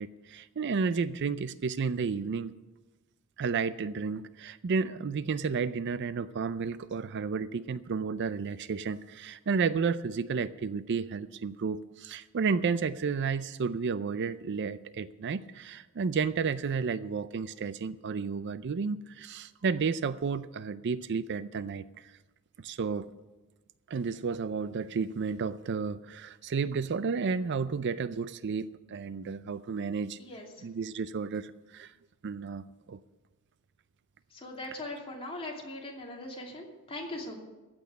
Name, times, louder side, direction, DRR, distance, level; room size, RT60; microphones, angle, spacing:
voice 1, 0.0-2.5 3.4-22.1 22.6-23.1 23.9-30.2 30.6-31.9 32.2-33.0, right 5 dB, 55° right, 15 dB, 0.4 m, -32 dB
voice 2, 34.3-37.4, left 1 dB, 25° left, -1 dB, 2.6 m, -40 dB
15.5 x 6.1 x 9.5 m, 1.2 s
head